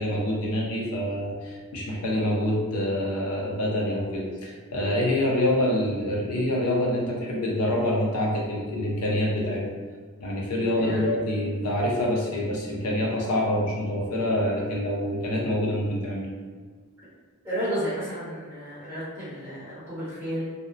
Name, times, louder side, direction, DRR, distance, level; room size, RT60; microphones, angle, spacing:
voice 1, 0.0-9.6 10.2-16.3, left 1 dB, 85° left, -2 dB, 0.6 m, -26 dB
voice 2, 10.7-11.2 17.4-20.5, equal, 10° right, -13 dB, 0.8 m, -32 dB
2.7 x 2.1 x 2.4 m, 1.5 s
head